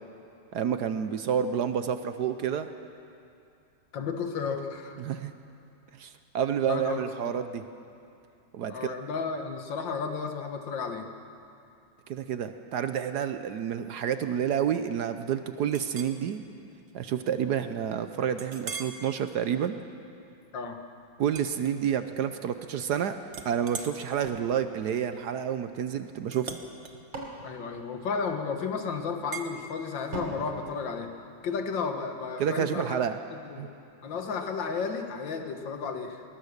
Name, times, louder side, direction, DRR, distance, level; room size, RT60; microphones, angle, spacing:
voice 1, 0.5-2.7 5.0-5.3 5.9-7.6 8.5-8.9 12.1-16.4 16.9-19.7 21.2-23.1 23.4-26.6 32.4-33.2 33.6-33.7, right 8 dB, 65° right, 10 dB, 1.1 m, -29 dB
voice 2, 3.9-5.0 6.7-7.3 8.7-11.1 20.5-20.8 27.4-31.1 31.4-33.0 33.4-33.7 34.0-36.2, left 5 dB, 65° left, 5 dB, 2.0 m, -33 dB
Chink clink, 15.7-16.2 16.7-16.9 17.3-17.4 18.4-19.0 19.5-19.8 21.3-22.2 22.5-22.9 23.3-28.4 29.3-29.5, right 5 dB, 40° right, 1.2 m, -42 dB
sound 1, 24.2-25.8 26.6-28.6 30.1-31.7, right 2 dB, 80° right, 3.6 m, -44 dB
20.5 x 20.0 x 6.6 m, 2.6 s
omnidirectional pair, 2.2 m